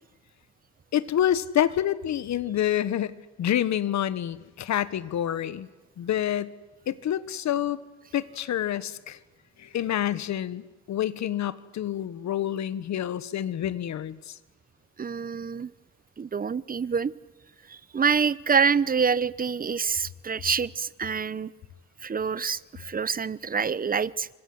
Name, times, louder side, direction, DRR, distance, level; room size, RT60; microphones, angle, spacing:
voice 1, 0.9-5.7 6.0-6.5 6.9-7.8 8.1-9.2 9.6-14.4, left 11 dB, 65° left, 16 dB, 1.4 m, -28 dB
voice 2, 15.0-15.7 16.2-17.1 17.7-21.5 22.0-24.3, right 6 dB, 30° right, 19 dB, 0.9 m, -26 dB
28.5 x 26.0 x 7.9 m, 1.1 s
cardioid pair, 90°, 30 cm